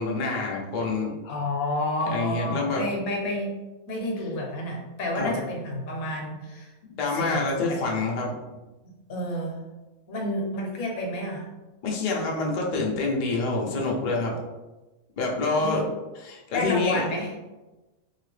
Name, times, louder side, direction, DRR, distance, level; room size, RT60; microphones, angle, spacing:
voice 1, 0.0-1.1 2.1-2.8 5.1-5.3 6.9-8.3 11.8-14.3 15.2-15.8 16.2-17.0, left 3 dB, 55° left, -2 dB, 0.5 m, -27 dB
voice 2, 1.2-3.6 3.9-6.7 7.1-7.9 8.8-9.6 10.1-11.5 15.6-15.8 16.5-17.3, left 1 dB, 80° left, 0 dB, 1.2 m, -30 dB
2.9 x 2.8 x 3.2 m, 1.1 s
omnidirectional pair, 1.5 m